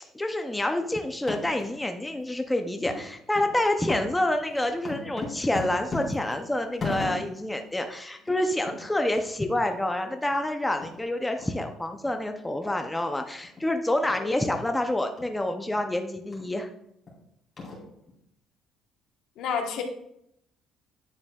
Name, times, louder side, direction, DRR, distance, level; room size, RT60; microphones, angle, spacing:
voice 1, 0.1-16.7, left 1 dB, 5° left, 5 dB, 0.5 m, -28 dB
sound 1, 1.1-1.7 2.1-2.2 2.8-3.0 3.3-3.5 3.9-7.5 7.9-8.0 8.2-8.4 8.7-8.8 9.1-9.2 9.7-9.8 10.3-10.4 10.8-10.9 11.4-11.5 12.0-12.1 12.6-12.7 13.4-13.6 14.0-14.2 14.6-14.7 15.2-15.3 15.7-15.8 16.3-16.5 17.1-17.2 17.6-18.1, left 2 dB, 25° left, 2.8 m, -37 dB
voice 2, 19.4-19.8, left 6 dB, 70° left, 4 dB, 1.1 m, -30 dB
8.9 x 7.5 x 2.3 m, 0.75 s
cardioid pair, 145°, 0 cm